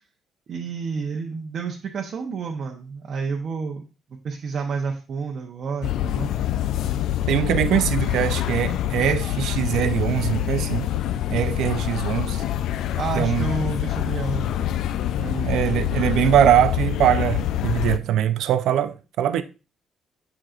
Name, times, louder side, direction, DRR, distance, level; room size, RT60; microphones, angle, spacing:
voice 1, 0.5-3.8 4.2-6.3 12.9-14.7 15.2-15.9, right 5 dB, 45° right, 0.8 m, -30 dB
sound 1, 5.8-18.0, left 12 dB, 75° left, 0.4 m, -25 dB
voice 2, 7.3-10.9 11.3-12.4 13.2-13.5 15.4-19.4, right 10 dB, 75° right, 0.5 m, -22 dB
7.6 x 6.3 x 2.4 m
cardioid pair, 155°, 0 cm